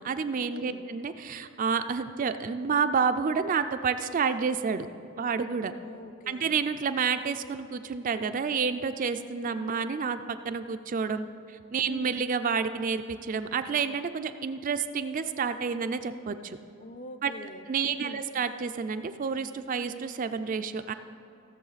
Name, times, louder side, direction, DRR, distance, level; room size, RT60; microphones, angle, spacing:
voice 1, 0.0-4.9 5.2-5.7 6.3-10.2 10.4-11.3 11.7-16.6 17.2-17.3 17.7-20.9, right 5 dB, 40° right, 9 dB, 0.3 m, -29 dB
voice 2, 0.5-0.9 5.8-6.6 11.9-12.2 16.8-17.7 17.9-18.2, left 2 dB, 40° left, 8 dB, 0.5 m, -44 dB
16.0 x 6.9 x 4.0 m, 2.6 s
head